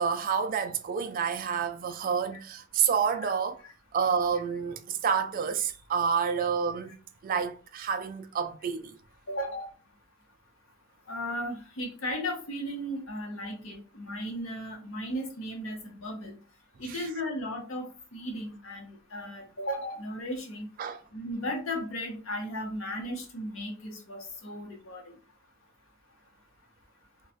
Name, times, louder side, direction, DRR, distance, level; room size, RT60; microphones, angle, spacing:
voice 1, 0.0-3.6 3.9-6.9 7.2-9.0 16.8-17.1 20.8-21.0, right 6 dB, 40° right, 0.3 m, -29 dB
voice 2, 9.3-9.7 11.1-16.3 16.8-20.7 21.1-25.0, equal, 70° left, 0.9 m, -35 dB
3.0 x 2.3 x 2.7 m
head